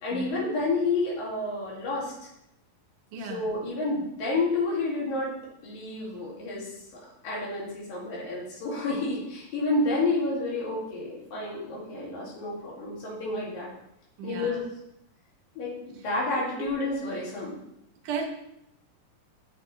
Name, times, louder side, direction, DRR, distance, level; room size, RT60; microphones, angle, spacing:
voice 1, 0.0-2.3 3.2-5.3 5.6-6.8 7.2-13.7 14.2-14.6 15.6-17.5, left 2 dB, 75° left, -5 dB, 4.2 m, -30 dB
voice 2, 3.1-3.4 14.2-14.6 16.6-16.7 18.0-18.3, right 5 dB, 70° right, 3 dB, 2.7 m, -34 dB
9.6 x 8.4 x 3.3 m, 0.83 s
omnidirectional pair, 4.1 m